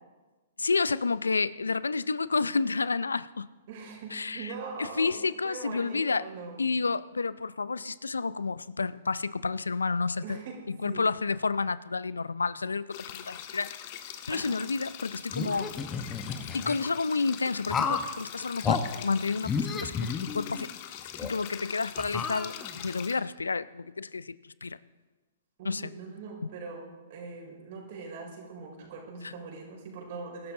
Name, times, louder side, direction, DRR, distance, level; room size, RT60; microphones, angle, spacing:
voice 1, 0.6-3.5 4.1-6.3 6.6-10.4 10.7-13.8 14.3-15.7 16.5-20.7 21.2-24.8 25.6-25.9 29.2-29.3, left 4 dB, 80° left, 18 dB, 0.5 m, -30 dB
voice 2, 3.7-6.6 10.2-11.1 14.3-14.6 15.5-15.6 25.6-30.5, right 4 dB, 50° right, 0 dB, 5.6 m, -42 dB
sound 1, 12.9-23.2, left 10 dB, 45° left, 1.5 m, -43 dB
sound 2, 15.3-16.8 17.7-18.1 18.6-18.8 19.4-20.7 21.2-21.3 22.0-22.9, left 6 dB, 20° left, 1.2 m, -31 dB
23.5 x 13.0 x 3.9 m, 1.2 s
figure-of-eight pair, 115°, 0 cm